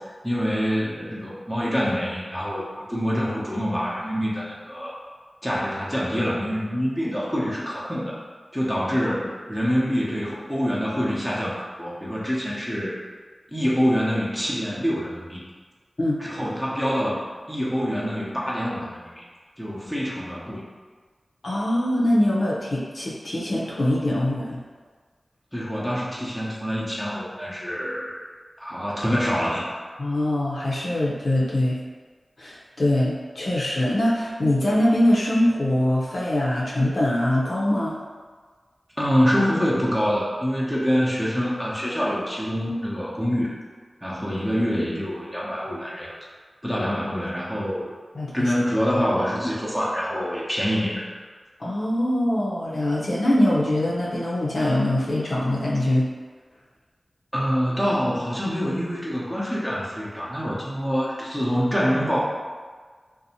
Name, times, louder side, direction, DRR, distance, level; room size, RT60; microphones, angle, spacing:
voice 1, 0.0-5.0 5.4-8.2 8.5-13.0 13.5-15.4 16.2-19.2 19.6-20.7 25.5-28.2 28.6-29.6 39.0-43.5 44.0-46.2 46.6-47.9 48.3-51.1 57.3-62.2, equal, 5° right, -6 dB, 0.7 m, -25 dB
voice 2, 21.4-24.6 30.0-31.8 32.4-38.0 48.1-48.5 51.6-56.1, left 1 dB, 75° left, -6 dB, 0.6 m, -23 dB
2.6 x 2.1 x 2.8 m, 1.5 s
cardioid pair, 45°, 0 cm